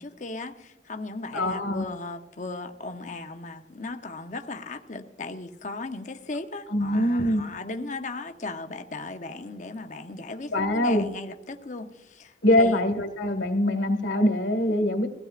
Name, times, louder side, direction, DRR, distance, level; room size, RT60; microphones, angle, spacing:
voice 1, 0.0-12.8, left 3 dB, 40° left, 0.8 m, -37 dB
voice 2, 1.3-1.8 6.7-7.4 10.5-11.0 12.4-15.1, left 1 dB, 85° left, 1.7 m, -23 dB
21.5 x 15.5 x 2.5 m
head